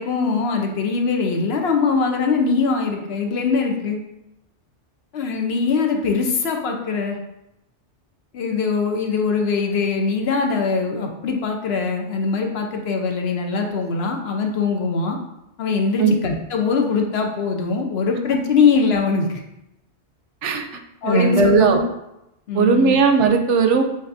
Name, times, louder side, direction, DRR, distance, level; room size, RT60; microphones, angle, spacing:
voice 1, 0.0-4.0 5.1-7.2 8.3-15.2 15.6-19.4 21.0-21.8 22.5-22.9, left 5 dB, 65° left, 2 dB, 0.9 m, -22 dB
voice 2, 21.0-21.8 22.5-23.8, right 5 dB, 90° right, 5 dB, 0.9 m, -17 dB
7.3 x 2.8 x 2.6 m, 0.88 s
omnidirectional pair, 1.2 m